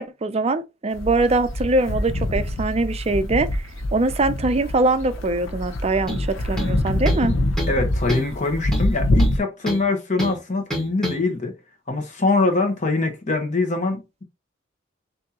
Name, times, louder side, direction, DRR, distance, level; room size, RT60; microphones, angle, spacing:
voice 1, 0.0-3.6 3.9-7.3, right 2 dB, 30° right, 0.5 m, -22 dB
sound 1, 0.9-9.4, left 1 dB, 75° left, 0.8 m, -25 dB
sound 2, 6.1-6.3 6.6-7.3 7.6-7.8 8.1-8.3 8.7-9.9 10.2-10.4 10.7-11.2, equal, 5° left, 1.7 m, -29 dB
voice 2, 7.7-11.5 11.9-14.2, left 3 dB, 40° left, 1.2 m, -23 dB
6.2 x 2.7 x 2.9 m
head